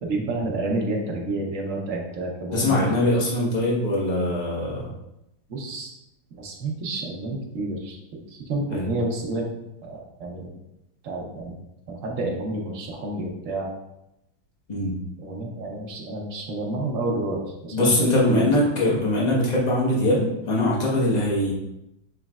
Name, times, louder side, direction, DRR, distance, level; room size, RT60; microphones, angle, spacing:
voice 1, 0.0-3.0 5.5-5.9 6.4-9.4 9.8-10.5 11.0-11.5 11.9-13.7 15.2-18.5, right 2 dB, 55° right, -2 dB, 0.9 m, -29 dB
voice 2, 2.5-4.9 8.7-8.9 14.7-15.0 17.7-21.5, left 1 dB, 35° left, -4 dB, 0.7 m, -22 dB
6.3 x 3.1 x 2.3 m, 0.87 s
omnidirectional pair, 2.3 m